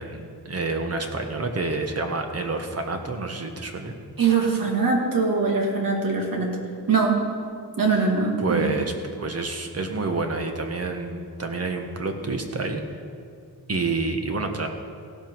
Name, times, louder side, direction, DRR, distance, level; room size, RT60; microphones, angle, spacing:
voice 1, 0.0-4.0 8.4-8.9 9.2-12.8 13.7-14.7, right 3 dB, 40° right, 4 dB, 1.3 m, -28 dB
voice 2, 4.2-6.5 6.9-7.2 7.8-8.6, right 4 dB, 55° right, 0 dB, 2.3 m, -22 dB
16.5 x 11.5 x 4.7 m, 2.3 s
wide cardioid pair, 140°, 40 cm